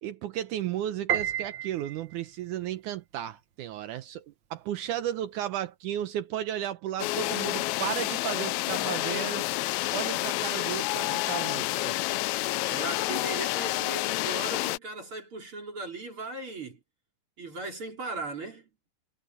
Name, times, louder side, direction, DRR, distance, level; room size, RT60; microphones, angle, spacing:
voice 1, 0.0-9.5 9.9-12.0, right 11 dB, 75° right, 2.2 m, -34 dB
Piano, 1.1-2.4, right 10 dB, 55° right, 1.3 m, -31 dB
sound 1, 7.0-14.8, left 18 dB, 80° left, 1.6 m, -29 dB
voice 2, 12.7-16.8 17.4-18.7, right 2 dB, 40° right, 5.4 m, -37 dB
omnidirectional pair, 3.7 m